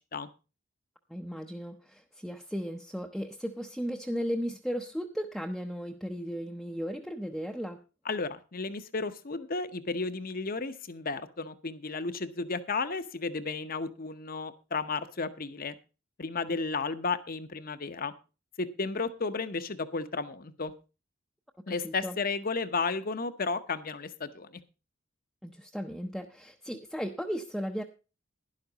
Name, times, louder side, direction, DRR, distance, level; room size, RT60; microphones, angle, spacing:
voice 1, 1.1-7.8 16.5-16.6 21.7-22.2 25.4-27.8, equal, ahead, 0.7 m, -36 dB
voice 2, 8.0-15.7 16.2-18.1 18.6-20.7 21.7-24.6, left 4 dB, 45° left, 0.9 m, -33 dB
12.0 x 11.0 x 4.0 m
head